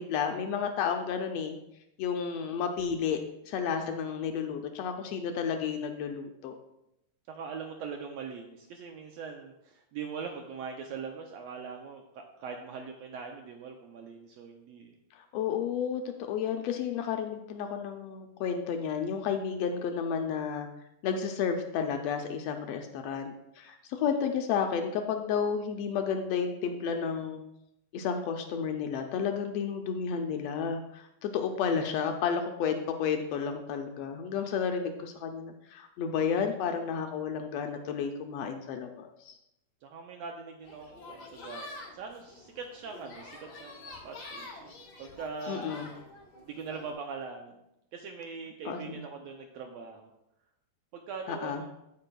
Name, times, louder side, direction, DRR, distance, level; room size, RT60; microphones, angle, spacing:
voice 1, 0.0-1.6 2.0-3.2 3.5-6.6 15.2-20.7 21.0-27.4 27.9-39.3 45.5-45.9 48.6-48.9 51.3-51.6, left 7 dB, 85° left, 5 dB, 1.4 m, -32 dB
voice 2, 7.3-15.0 39.8-41.6 41.9-44.7 45.0-45.7 46.5-47.6 47.9-50.1 50.9-51.7, right 5 dB, 80° right, 3 dB, 1.5 m, -41 dB
sound 1, 40.6-46.9, left 2 dB, 55° left, 1.2 m, -47 dB
13.0 x 5.2 x 2.2 m, 0.84 s
omnidirectional pair, 3.5 m